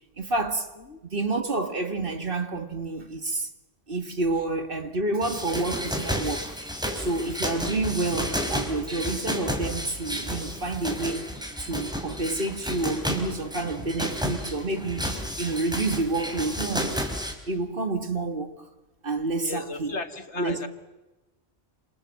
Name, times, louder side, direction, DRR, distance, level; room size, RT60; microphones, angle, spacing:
voice 1, 0.2-0.7 1.0-3.5 3.9-6.6 6.9-11.3 11.6-16.9 17.5-18.5 19.0-19.9 20.4-20.7, right 2 dB, 50° right, 2.2 m, -29 dB
sound 1, 5.2-17.3, equal, 5° right, 4.4 m, -32 dB
voice 2, 19.4-20.7, left 3 dB, 65° left, 2.2 m, -35 dB
28.5 x 26.5 x 7.8 m
omnidirectional pair, 1.2 m